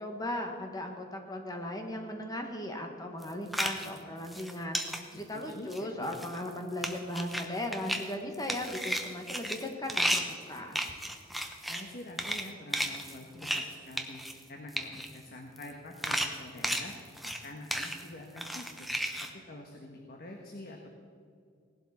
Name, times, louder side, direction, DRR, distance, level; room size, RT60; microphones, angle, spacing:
voice 1, 0.0-10.8, left 1 dB, 20° left, 3 dB, 1.3 m, -37 dB
sound 1, 3.2-4.0 4.3-5.0 5.5-5.8 6.0-6.5 6.8-7.5 7.7-8.0 8.3-11.9 12.2-12.5 12.7-13.6 13.9-14.4 14.7-15.1 15.6-15.7 16.0-17.4 17.7-18.0 18.4-19.3, equal, ahead, 0.8 m, -33 dB
voice 2, 5.3-6.1 11.6-14.2 14.5-16.9 17.2-18.9 19.3-20.9, left 1 dB, 50° left, 1 dB, 1.2 m, -46 dB
17.5 x 12.0 x 4.3 m, 2.2 s
head